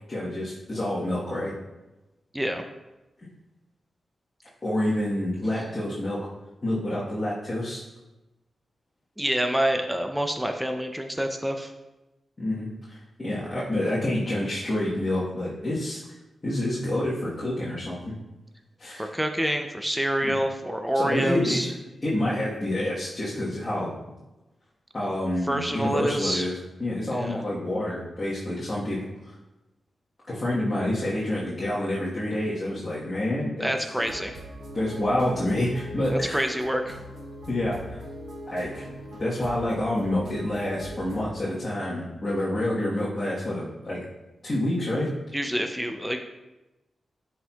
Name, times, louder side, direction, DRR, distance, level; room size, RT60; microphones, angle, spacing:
voice 1, 0.1-1.5 4.6-6.2 6.6-7.8 12.4-16.0 16.4-18.1 18.8-19.1 20.2-20.3 20.9-21.7 22.0-23.9 24.9-29.1 30.3-33.7 34.7-36.4 37.5-38.0 38.5-38.8 39.2-44.0 44.4-45.1, left 1 dB, 25° left, -8 dB, 1.2 m, -28 dB
voice 2, 9.2-11.7 19.0-21.7 25.5-26.5 27.1-27.4 33.6-34.4 36.1-37.0 45.3-46.3, equal, 5° right, 5 dB, 0.4 m, -27 dB
sound 1, 33.9-41.3, equal, 75° right, 1.9 m, -41 dB
11.0 x 4.4 x 2.3 m, 1.0 s
wide cardioid pair, 140°, 0 cm